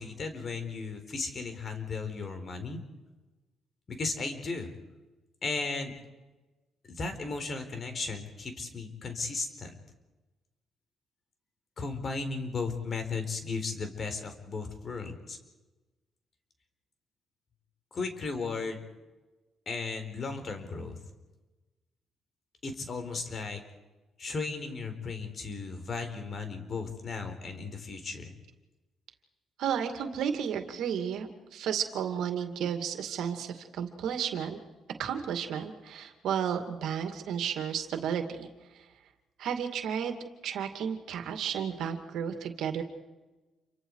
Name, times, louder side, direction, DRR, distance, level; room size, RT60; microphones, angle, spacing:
voice 1, 0.0-2.8 3.9-4.7 5.4-6.0 6.9-9.7 11.8-15.4 17.9-18.8 19.7-21.0 22.6-23.6 24.2-28.3, left 4 dB, 45° left, 7 dB, 4.3 m, -35 dB
voice 2, 29.6-34.6 35.0-38.5 38.7-38.8 39.4-40.2 40.4-42.8, right 8 dB, 80° right, 7 dB, 2.4 m, -32 dB
28.5 x 24.5 x 4.9 m, 1.2 s
cardioid pair, 90°, 0 cm